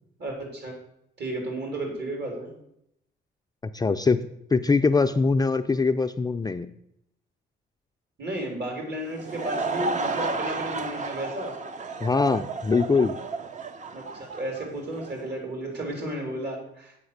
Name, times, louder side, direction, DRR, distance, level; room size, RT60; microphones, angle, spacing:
voice 1, 0.2-0.7 1.2-2.5 8.2-11.5 13.9-17.0, right 1 dB, 60° right, 1 dB, 3.5 m, -33 dB
voice 2, 3.6-4.2 4.5-6.7 12.0-13.2, left 4 dB, 20° left, 8 dB, 0.4 m, -22 dB
Laughter / Crowd, 9.0-15.3, right 3 dB, 40° right, 0.7 m, -32 dB
7.9 x 5.5 x 6.6 m, 0.78 s
cardioid pair, 90°, 20 cm